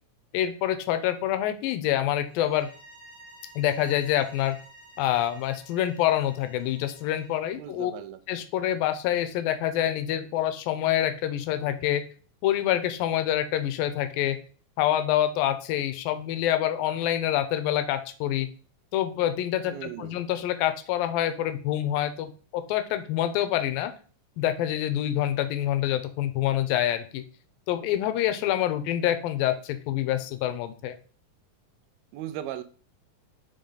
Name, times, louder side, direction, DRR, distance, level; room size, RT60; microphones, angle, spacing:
voice 1, 0.3-2.7 3.6-4.6 5.0-7.9 8.3-12.0 12.4-14.4 14.8-18.5 18.9-23.9 24.4-27.2 27.7-31.0, left 12 dB, 85° left, 10 dB, 2.3 m, -26 dB
sound 1, 2.3-7.4, right 1 dB, 35° left, 2.4 m, -51 dB
voice 2, 7.5-8.2 19.7-20.1 32.1-32.6, right 12 dB, 90° right, 11 dB, 2.5 m, -37 dB
5.5 x 5.1 x 3.8 m, 0.39 s
omnidirectional pair, 4.1 m